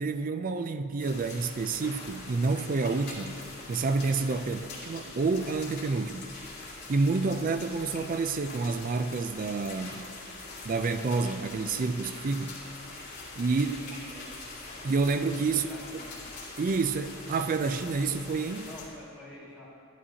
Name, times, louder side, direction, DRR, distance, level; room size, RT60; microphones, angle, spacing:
voice 1, 0.0-3.3 3.7-6.3 6.9-10.1 10.6-12.6 13.4-13.8 14.8-16.0 16.6-18.7, right 4 dB, 40° right, 0.4 m, -29 dB
sound 1, 1.0-18.9, left 2 dB, 50° left, 2.2 m, -43 dB
sound 2, 1.8-2.3 5.4-5.9 9.8-10.3 14.7-15.1, left 3 dB, 35° left, 1.6 m, -50 dB
voice 2, 13.5-14.3 15.5-16.3 18.6-19.7, left 1 dB, 5° right, 1.9 m, -48 dB
11.0 x 11.0 x 2.8 m
head